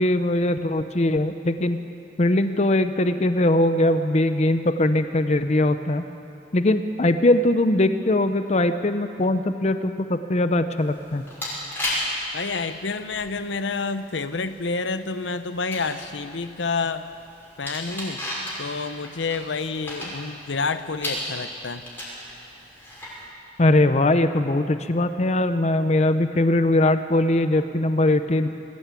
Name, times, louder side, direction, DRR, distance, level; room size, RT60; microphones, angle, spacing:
voice 1, 0.0-1.8 2.2-6.0 6.5-11.2 23.6-28.5, left 1 dB, 40° left, 10 dB, 0.7 m, -21 dB
sound 1, 10.8-23.2, left 1 dB, 10° left, 5.8 m, -35 dB
voice 2, 12.3-17.0 17.6-18.2 18.6-21.9, left 4 dB, 90° left, 11 dB, 0.9 m, -29 dB
21.0 x 15.5 x 8.3 m, 2.7 s
head